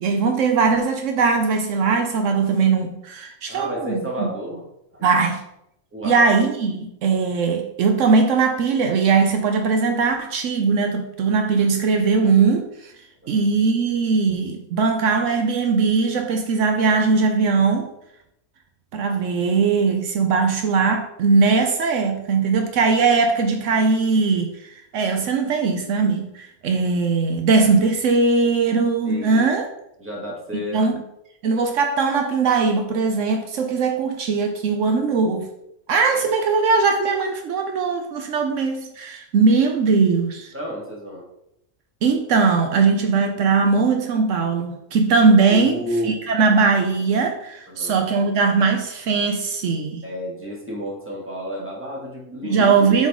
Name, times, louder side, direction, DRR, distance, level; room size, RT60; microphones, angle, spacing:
voice 1, 0.0-4.3 5.0-5.4 6.0-12.9 13.3-17.9 18.9-29.7 30.7-31.0 31.4-35.5 35.9-40.5 42.0-50.0 52.4-53.1, right 4 dB, 75° right, 5 dB, 1.0 m, -20 dB
voice 2, 3.5-4.6 4.9-5.1 5.9-6.3 13.2-13.4 29.0-29.5 30.0-30.9 36.1-36.2 40.5-41.2 45.5-46.1 47.7-48.0 50.0-52.7, equal, 10° right, -3 dB, 1.6 m, -31 dB
7.3 x 4.0 x 3.6 m, 0.80 s
omnidirectional pair, 1.3 m